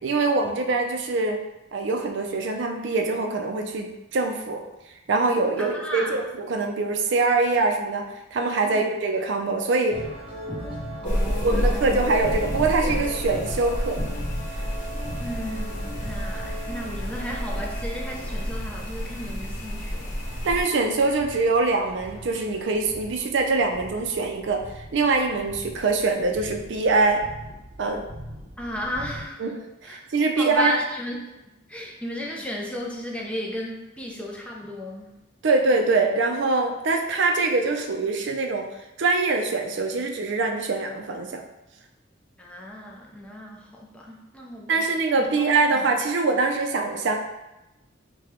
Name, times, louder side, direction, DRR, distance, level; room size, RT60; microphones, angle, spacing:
voice 1, 0.0-1.4 1.7-4.6 5.1-8.0 8.3-10.0 11.4-14.0 20.4-27.2 27.8-28.0 29.4-30.7 35.4-38.7 39.0-41.4 44.7-47.2, right 3 dB, 65° right, 3 dB, 0.4 m, -23 dB
voice 2, 5.6-6.2 8.6-8.9 11.0-12.0 15.2-20.1 28.6-29.4 29.8-30.0 30.4-31.2 31.7-35.2 42.4-44.9 45.2-45.9, equal, 5° left, -2 dB, 0.4 m, -34 dB
sound 1, 9.9-29.2, equal, 25° right, 0.7 m, -39 dB
sound 2, 11.0-20.6, equal, 40° left, 0.9 m, -30 dB
4.8 x 2.2 x 2.9 m, 0.98 s
head